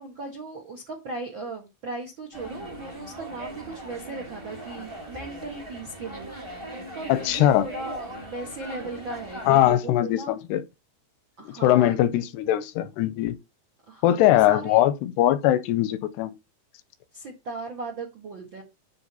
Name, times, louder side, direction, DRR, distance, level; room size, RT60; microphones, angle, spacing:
voice 1, 0.0-6.3 6.7-10.3 11.4-12.0 13.9-14.8 17.1-18.6, right 3 dB, 85° right, 1.0 m, -37 dB
sound 1, 2.3-9.7, right 1 dB, 30° right, 0.5 m, -40 dB
voice 2, 7.1-7.7 9.5-10.6 11.5-13.4 14.0-16.3, left 13 dB, 80° left, 2.5 m, -21 dB
9.9 x 3.5 x 6.9 m
omnidirectional pair, 5.2 m